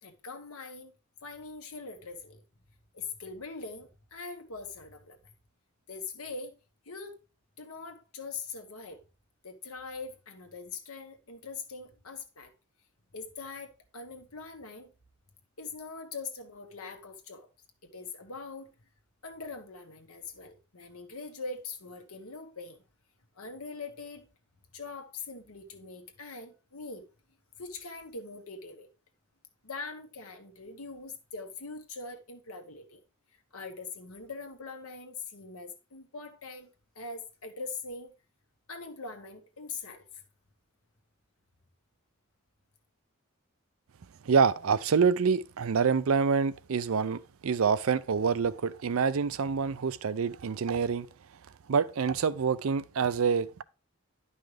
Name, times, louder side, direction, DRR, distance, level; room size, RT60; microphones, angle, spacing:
voice 1, 0.0-0.9 1.2-2.4 2.9-5.2 5.9-6.6 6.8-7.2 7.6-9.0 9.4-12.5 13.1-14.9 15.6-17.5 17.8-18.7 19.2-22.8 23.4-24.2 24.7-27.1 27.6-28.9 29.6-33.0 33.5-36.7 36.9-38.1 38.7-40.2, left 4 dB, 80° left, 1.4 m, -42 dB
voice 2, 44.2-51.1 51.7-53.6, right 5 dB, 75° right, 0.5 m, -26 dB
10.5 x 5.6 x 3.3 m
head